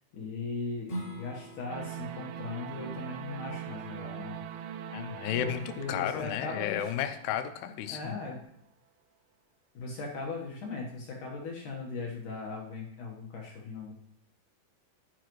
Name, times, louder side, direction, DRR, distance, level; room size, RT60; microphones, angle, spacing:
voice 1, 0.1-4.7 5.4-6.9 7.9-8.4 9.7-13.9, left 3 dB, 60° left, -2 dB, 2.4 m, -38 dB
Strum, 0.8-6.0, equal, 20° left, 2.9 m, -46 dB
sound 1, 1.7-7.8, right 10 dB, 80° right, 2.4 m, -42 dB
voice 2, 4.9-8.2, left 10 dB, 80° left, 8 dB, 2.6 m, -33 dB
12.0 x 9.7 x 3.1 m, 0.76 s
omnidirectional pair, 4.9 m